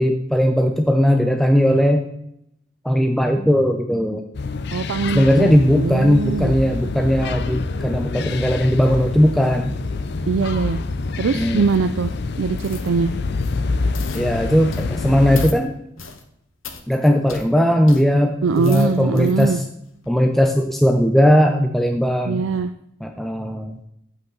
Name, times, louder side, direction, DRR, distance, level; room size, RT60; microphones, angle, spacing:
voice 1, 0.0-2.1 2.8-4.2 5.1-9.8 11.3-11.6 14.1-15.7 16.9-19.6 20.1-22.4 23.0-23.8, equal, ahead, 4 dB, 0.5 m, -18 dB
sound 1, 4.3-15.5, left 3 dB, 55° left, 0.5 m, -26 dB
voice 2, 4.7-6.5 10.3-10.8 11.2-12.1 12.4-13.1 18.4-19.6 22.3-22.7, right 4 dB, 75° right, 9 dB, 0.4 m, -22 dB
sound 2, 12.6-12.9 13.3-13.6 13.9-14.3 14.7-15.0 15.3-15.6 16.0-16.2 16.6-16.8 17.3-17.5 17.9-18.0 18.4-19.5 20.0-20.1, left 6 dB, 85° left, 1.2 m, -38 dB
8.2 x 8.2 x 3.9 m, 0.76 s
head